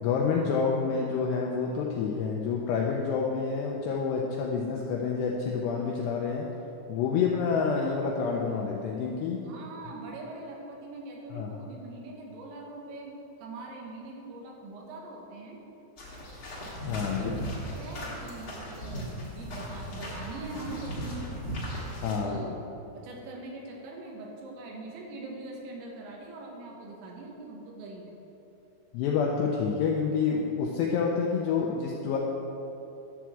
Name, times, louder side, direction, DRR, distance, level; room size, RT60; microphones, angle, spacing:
voice 1, 0.0-6.5 6.9-9.5 11.3-11.5 16.9-17.3 22.0-22.5 28.9-32.2, left 5 dB, 85° left, -1 dB, 2.4 m, -28 dB
voice 2, 9.4-15.6 17.1-21.3 22.2-22.6 22.9-28.1, right 2 dB, 75° right, -1 dB, 3.3 m, -42 dB
sound 1, 16.0-22.2, equal, 65° left, 1.0 m, -37 dB
11.5 x 4.6 x 7.3 m, 2.9 s
omnidirectional pair, 5.6 m